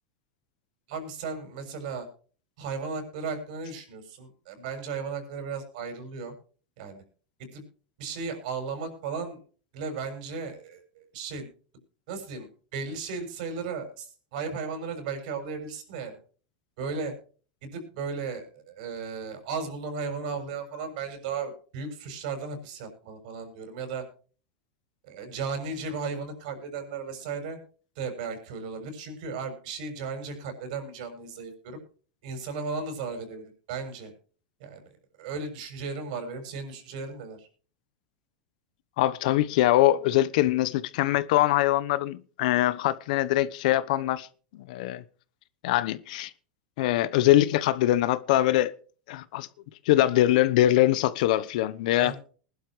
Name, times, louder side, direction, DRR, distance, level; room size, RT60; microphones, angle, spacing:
voice 1, 0.9-2.1 2.6-6.3 6.8-7.0 7.4-7.6 8.0-9.4 9.7-11.5 12.1-16.2 16.8-17.1 17.6-24.0 25.0-27.6 27.9-31.8 32.2-34.1 34.6-34.8 35.2-37.5 52.0-52.2, right 5 dB, 70° right, 6.8 m, -35 dB
voice 2, 39.0-44.3 44.7-45.0 45.6-46.3 46.8-48.7 49.1-49.5 49.9-52.1, left 14 dB, 70° left, 1.0 m, -23 dB
21.0 x 12.0 x 3.2 m
hypercardioid pair, 110°, 4 cm